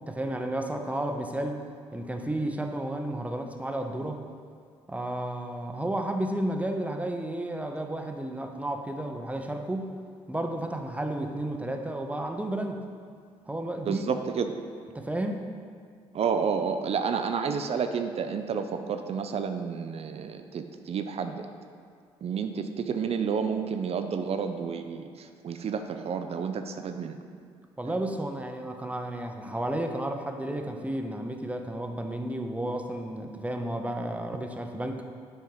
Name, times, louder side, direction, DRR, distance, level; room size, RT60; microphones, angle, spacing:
voice 1, 0.1-1.6 1.9-4.2 4.9-9.9 10.3-12.8 13.5-14.2 14.9-15.5 27.8-35.0, right 1 dB, 10° right, 4 dB, 0.8 m, -32 dB
voice 2, 13.9-14.6 16.1-21.5 22.2-27.2 27.8-27.9, right 6 dB, 55° right, 7 dB, 0.6 m, -30 dB
7.5 x 4.5 x 5.5 m, 2.1 s
hypercardioid pair, 55°, 13 cm